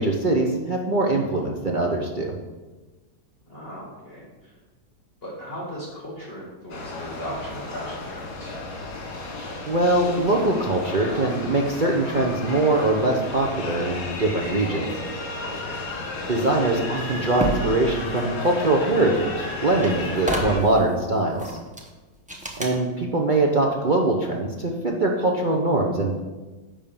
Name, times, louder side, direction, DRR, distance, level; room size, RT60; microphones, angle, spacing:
voice 1, 0.0-2.3 9.7-14.9 16.3-21.6 22.6-26.2, right 2 dB, 50° right, 0 dB, 0.6 m, -22 dB
voice 2, 3.5-4.5 5.2-8.5 15.4-15.9 20.0-20.8, equal, 35° left, -5 dB, 2.0 m, -38 dB
sound 1, 6.7-20.6, left 2 dB, 65° left, 1.9 m, -33 dB
sound 2, 17.0-17.8 19.2-19.3 19.5-20.8 21.4-21.9 22.3-22.8, right 1 dB, 5° right, 0.6 m, -29 dB
10.5 x 3.6 x 7.0 m, 1.2 s
omnidirectional pair, 2.0 m